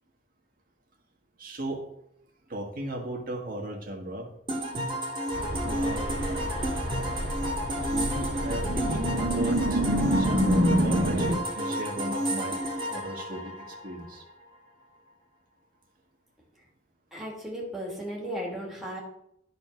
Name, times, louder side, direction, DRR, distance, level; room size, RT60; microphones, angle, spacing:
voice 1, 1.4-1.8 2.5-4.3 5.6-6.0 7.9-12.6 12.9-14.2, right 1 dB, 50° right, 0 dB, 1.7 m, -36 dB
sound 1, 4.5-14.2, equal, 25° right, 2.1 m, -31 dB
sound 2, 5.3-11.4, equal, 85° right, 1.7 m, -27 dB
voice 2, 17.1-19.0, equal, ahead, -4 dB, 2.6 m, -35 dB
11.0 x 4.3 x 5.8 m, 0.79 s
head